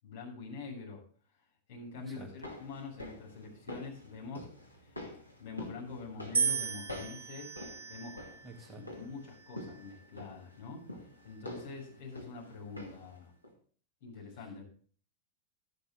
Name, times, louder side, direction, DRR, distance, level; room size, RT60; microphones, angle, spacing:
voice 1, 0.0-1.0 1.7-4.5 4.8-5.1 5.4-7.6 7.9-8.2 8.5-10.9 11.2-13.3 14.0-14.6, left 4 dB, 55° left, -2 dB, 7.0 m, -45 dB
voice 2, 1.9-2.3 8.4-8.9, right 2 dB, 15° right, 0 dB, 2.3 m, -48 dB
sound 1, 2.2-13.2 13.4-13.5, left 1 dB, 90° left, 2.3 m, -48 dB
sound 2, 6.3-8.6 9.4-9.9, right 6 dB, 65° right, 1.4 m, -35 dB
13.0 x 11.0 x 3.7 m, 0.44 s
figure-of-eight pair, 90°, 0 cm